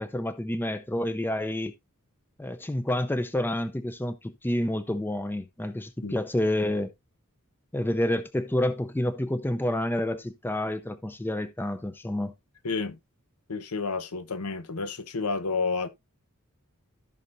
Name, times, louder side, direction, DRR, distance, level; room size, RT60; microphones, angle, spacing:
voice 1, 0.0-1.7 2.4-6.9 7.7-12.3, left 1 dB, 10° left, 0.5 m, -29 dB
voice 2, 12.6-13.0 13.5-15.9, left 4 dB, 85° left, 1.0 m, -30 dB
14.5 x 5.5 x 2.6 m
head